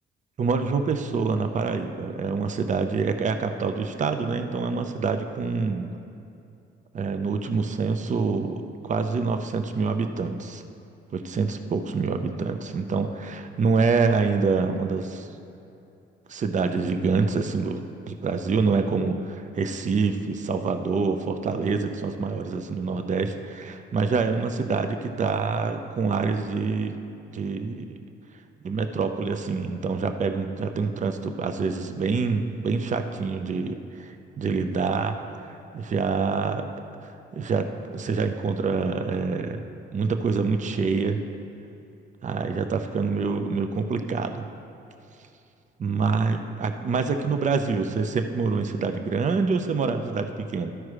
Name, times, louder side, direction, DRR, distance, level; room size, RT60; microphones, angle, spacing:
voice 1, 0.4-5.9 6.9-10.6 11.1-15.3 16.3-27.0 27.3-28.0 28.6-35.2 35.4-36.6 37.0-39.6 39.9-41.2 42.2-44.5 45.8-50.7, right 4 dB, 40° right, 7 dB, 0.6 m, -26 dB
12.5 x 4.7 x 4.8 m, 2.7 s
cardioid pair, 90°, 20 cm